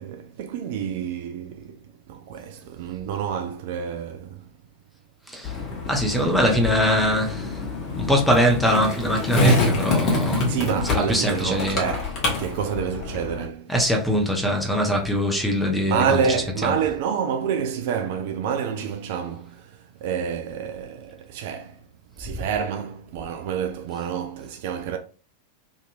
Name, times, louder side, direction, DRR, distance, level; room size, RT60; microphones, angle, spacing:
voice 1, 0.0-1.8 2.1-4.5 10.3-12.1 12.4-13.7 15.9-21.8 22.2-25.0, right 7 dB, 50° right, 0.3 m, -28 dB
Skateboard, 5.4-13.4, left 2 dB, 35° left, 1.0 m, -26 dB
voice 2, 5.9-7.6 8.0-11.8 13.7-16.2 16.6-16.7, equal, 5° left, 0.8 m, -22 dB
2.9 x 2.5 x 2.4 m
figure-of-eight pair, 90°, 0 cm